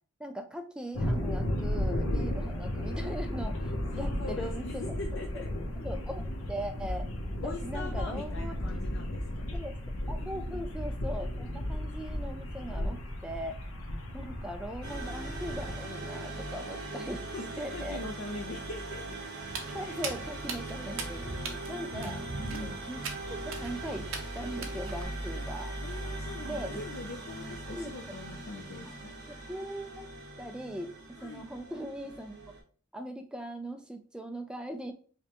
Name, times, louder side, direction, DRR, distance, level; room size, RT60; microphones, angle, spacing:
voice 1, 0.2-4.9 5.3-5.4 5.8-7.1 7.4-8.6 9.5-9.8 10.1-13.6 14.1-17.3 17.6-18.0 19.7-21.3 21.7-22.2 22.5-23.0 23.3-24.1 24.3-25.8 26.4-26.8 27.7-28.1 29.3-30.1 30.4-30.9 31.2-32.5 32.9-34.9, equal, 5° right, 6 dB, 0.3 m, -40 dB
sound 1, 0.9-15.7, left 1 dB, 85° left, 0.8 m, -34 dB
voice 2, 3.9-5.5 7.4-9.6 10.2-10.7 17.3-19.2 19.8-20.1 21.2-21.6 21.9-22.8 25.8-29.1 31.2-31.6, left 3 dB, 60° left, 1 dB, 0.5 m, -42 dB
sound 2, 14.8-32.6, right 2 dB, 55° right, 1.2 m, -40 dB
Walk footsteps, 19.4-25.0, right 4 dB, 70° right, 0.7 m, -41 dB
5.0 x 2.2 x 2.9 m, 0.42 s
head